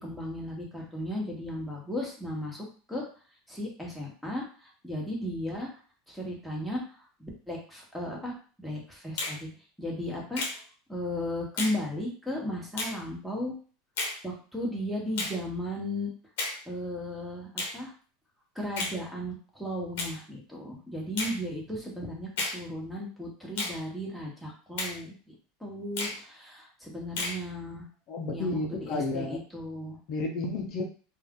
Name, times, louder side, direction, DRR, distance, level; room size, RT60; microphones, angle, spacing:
voice 1, 0.0-3.0 3.5-5.7 6.1-6.8 7.2-9.5 9.8-10.4 10.9-13.5 14.2-16.1 16.7-17.9 18.5-25.3 25.6-27.8 28.3-30.0, left 1 dB, ahead, -3 dB, 1.2 m, -35 dB
Finger snapping, 9.2-9.4 10.4-10.6 11.6-11.8 12.8-13.0 14.0-14.2 15.2-15.4 16.4-16.6 17.6-17.8 18.8-19.0 20.0-20.2 21.2-21.4 22.4-22.6 23.6-23.8 24.8-25.0 26.0-26.2 27.2-27.4, left 3 dB, 70° left, 0.9 m, -32 dB
voice 2, 28.1-29.4 30.1-30.8, left 2 dB, 50° left, 1 dB, 0.7 m, -31 dB
2.5 x 2.4 x 3.7 m, 0.39 s
supercardioid pair, 110°, 0 cm